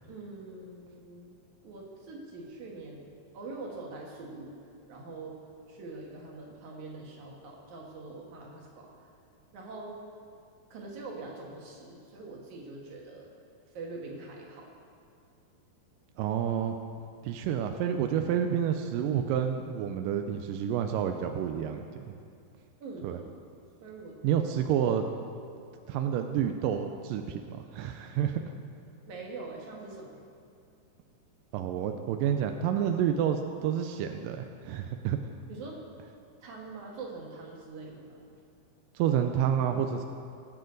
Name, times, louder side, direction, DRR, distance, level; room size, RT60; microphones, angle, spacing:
voice 1, 0.0-1.3 1.6-3.1 3.3-4.5 4.9-5.4 5.7-8.9 9.5-10.0 10.7-13.3 13.7-14.7 22.8-23.2 23.8-24.2 29.1-30.2 35.5-35.8 36.4-38.2, right 3 dB, 55° right, -1 dB, 2.8 m, -43 dB
voice 2, 16.2-16.8 17.2-22.2 23.0-23.2 24.2-25.1 25.9-28.4 31.5-35.2 39.0-40.1, right 9 dB, 85° right, 6 dB, 2.0 m, -29 dB
20.5 x 8.0 x 3.9 m, 2.4 s
omnidirectional pair, 4.5 m